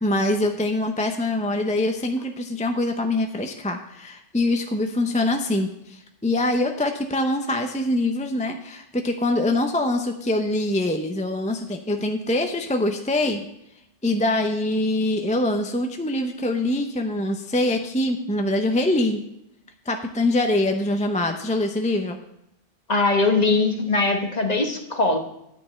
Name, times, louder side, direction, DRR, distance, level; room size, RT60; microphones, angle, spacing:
voice 1, 0.0-13.4 14.0-19.2 19.9-22.2, left 1 dB, 10° left, 4 dB, 0.6 m, -24 dB
voice 2, 22.9-25.2, left 3 dB, 35° left, 4 dB, 1.3 m, -21 dB
10.5 x 5.3 x 7.7 m, 0.79 s
omnidirectional pair, 1.2 m